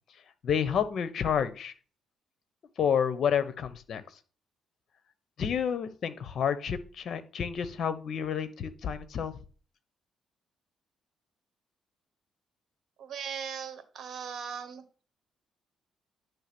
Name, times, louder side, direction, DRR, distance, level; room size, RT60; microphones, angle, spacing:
voice 1, 0.4-1.7 2.8-4.0 5.4-9.3, left 7 dB, 60° left, 14 dB, 0.9 m, -29 dB
voice 2, 13.0-14.8, right 7 dB, 60° right, 10 dB, 1.5 m, -38 dB
10.0 x 3.4 x 6.0 m, 0.37 s
cardioid pair, 90°, 0 cm